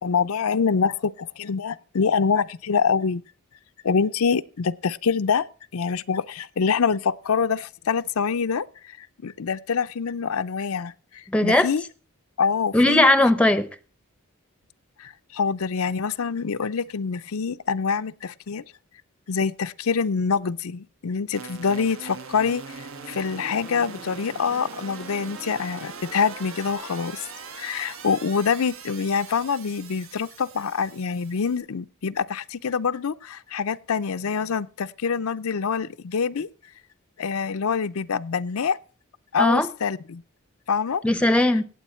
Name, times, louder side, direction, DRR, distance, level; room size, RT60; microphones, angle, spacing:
voice 1, 0.0-3.2 3.8-5.5 5.7-11.8 12.4-13.1 15.0-18.6 19.3-27.3 27.5-36.5 37.2-38.8 39.3-40.2 40.7-41.0, left 5 dB, 75° left, 0.5 m, -25 dB
voice 2, 11.3-11.7 12.7-13.7 39.4-39.7 41.0-41.6, left 1 dB, 5° left, 0.7 m, -18 dB
sound 1, 21.3-31.6, right 5 dB, 70° right, 1.5 m, -41 dB
17.5 x 7.9 x 4.3 m
head